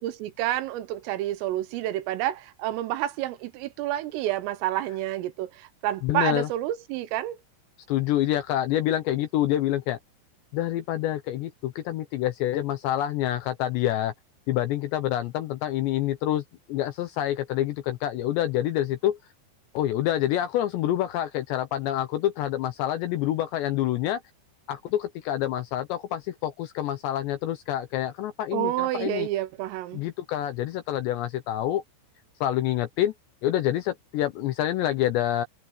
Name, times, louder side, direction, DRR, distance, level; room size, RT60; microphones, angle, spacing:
voice 1, 0.0-7.4 28.5-30.0, right 14 dB, 80° right, 3.7 m, -29 dB
voice 2, 6.0-6.5 7.9-10.0 10.5-14.1 14.5-16.4 16.7-19.2 19.7-24.2 24.7-29.3 29.9-31.8 32.4-33.1 33.4-35.5, left 12 dB, 75° left, 2.7 m, -27 dB
omnidirectional pair, 5.9 m